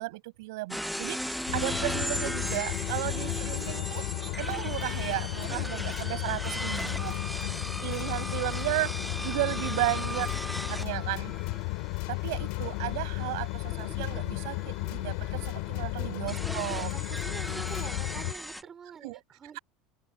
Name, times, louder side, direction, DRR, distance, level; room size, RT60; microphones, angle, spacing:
voice 1, 0.0-4.0 4.4-7.2 7.8-10.3 10.6-11.4 12.1-16.9 19.0-19.2, right 22 dB, 70° right, 5.7 m, -34 dB
sound 1, 0.7-18.6, equal, ahead, 0.6 m, -37 dB
sound 2, 1.5-18.3, left 26 dB, 60° left, 2.7 m, -34 dB
voice 2, 5.5-6.0 9.9-10.4 15.9-19.6, right 7 dB, 20° right, 4.4 m, -48 dB
open air
cardioid pair, 180°, 2 cm